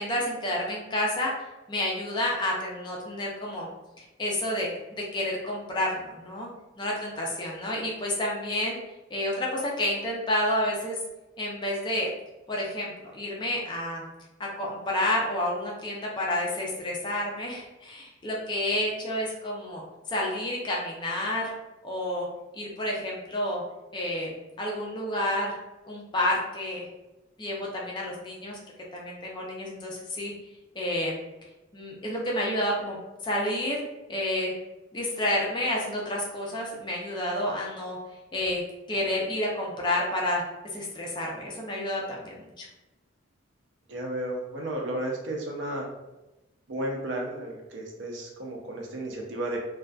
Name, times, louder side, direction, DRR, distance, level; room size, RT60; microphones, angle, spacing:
voice 1, 0.0-1.3 1.7-3.7 4.0-6.5 6.8-8.8 9.1-11.0 11.4-12.1 12.5-14.0 14.4-21.5 21.8-22.3 22.5-23.6 23.9-24.3 24.6-25.6 25.9-26.9 27.4-28.6 28.9-30.3 30.7-31.2 31.7-33.8 34.1-34.5 34.9-38.0 38.3-38.6 38.9-40.4 40.7-42.7, left 1 dB, 20° left, -2 dB, 0.4 m, -30 dB
voice 2, 43.9-45.8 46.7-49.6, right 1 dB, 60° right, 0 dB, 0.5 m, -33 dB
2.5 x 2.2 x 2.2 m, 1.0 s
head